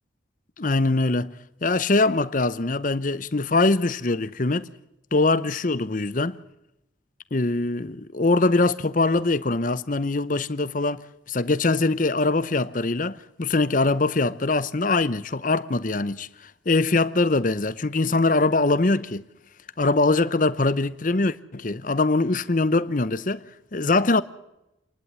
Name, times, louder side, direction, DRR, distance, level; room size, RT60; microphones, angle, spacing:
voice 1, 0.6-1.3 1.6-4.7 5.1-6.4 7.3-16.3 16.7-19.2 19.8-23.5 23.7-24.2, left 3 dB, 45° left, 0.8 m, -22 dB
28.0 x 11.5 x 9.5 m
head